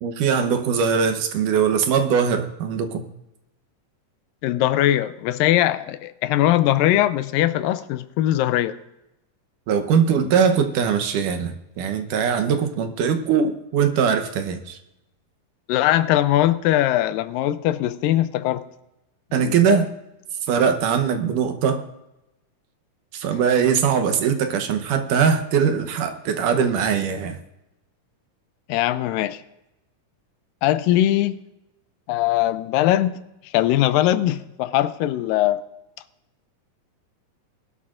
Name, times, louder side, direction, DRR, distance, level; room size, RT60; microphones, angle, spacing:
voice 1, 0.0-3.0 9.7-14.8 19.3-19.9 20.5-21.8 23.1-27.4, right 7 dB, 70° right, 2.4 m, -21 dB
voice 2, 4.4-8.8 15.7-18.6 19.4-19.9 28.7-29.4 30.6-31.4 32.1-33.2 33.5-35.6, left 13 dB, 85° left, 2.2 m, -21 dB
20.0 x 12.0 x 2.5 m
omnidirectional pair, 4.0 m